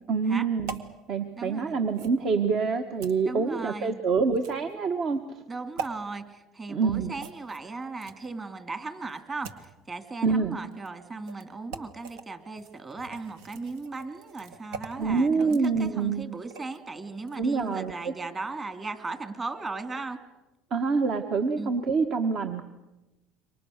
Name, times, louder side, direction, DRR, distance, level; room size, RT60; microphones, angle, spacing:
voice 1, 0.1-0.8 1.1-5.4 6.7-7.1 10.2-10.6 15.0-16.2 17.4-18.1 20.7-22.6, right 5 dB, 50° right, 6 dB, 1.5 m, -26 dB
sound 1, 0.7-0.9 1.9-2.2 3.0-3.2 4.3-4.7 5.8-5.9 7.2-8.3 9.0-9.7 10.7-10.9 11.2-11.4 11.7-12.2 12.6-16.8 17.2-17.4, right 5 dB, 80° right, 1.9 m, -42 dB
voice 2, 1.4-1.8 3.2-4.0 5.5-20.2 21.6-21.7, right 3 dB, 25° right, 9 dB, 2.7 m, -37 dB
28.0 x 24.5 x 6.7 m, 1.0 s
supercardioid pair, 105°, 0 cm